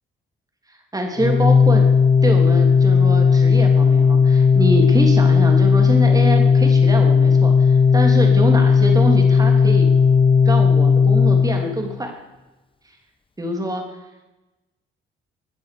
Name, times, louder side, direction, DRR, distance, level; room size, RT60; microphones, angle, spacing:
voice 1, 0.9-1.9 2.2-9.9 10.4-12.1 13.4-13.8, right 1 dB, 20° right, 3 dB, 3.2 m, -24 dB
Organ, 1.2-12.1, left 5 dB, 25° left, 1.1 m, -15 dB
22.0 x 7.8 x 6.8 m, 1.0 s
cardioid pair, 90°, 20 cm